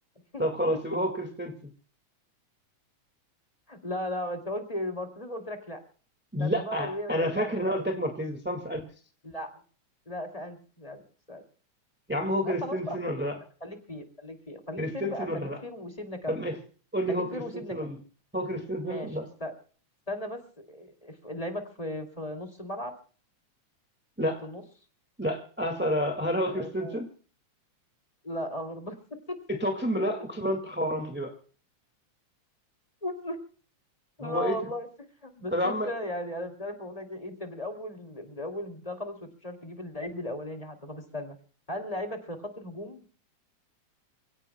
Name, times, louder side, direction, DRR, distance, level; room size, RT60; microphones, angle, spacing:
voice 1, 0.4-1.7 6.3-8.9 12.1-13.3 14.8-15.6 16.3-16.6 16.9-18.0 18.3-19.2 24.2-24.4 25.2-27.1 29.5-31.3 34.2-34.6 35.5-35.9, equal, 5° right, 3 dB, 1.1 m, -29 dB
voice 2, 3.7-5.8 6.4-7.7 9.2-9.5 10.1-11.0 11.3-11.4 12.5-13.2 13.6-16.5 17.1-17.9 18.8-19.1 19.4-19.5 20.1-22.9 24.4-24.6 26.4-27.0 28.2-29.4 33.0-33.4 34.2-34.9 35.2-41.4 41.7-43.0, left 1 dB, 15° left, 5 dB, 2.1 m, -36 dB
28.5 x 17.5 x 2.2 m, 0.41 s
omnidirectional pair, 3.5 m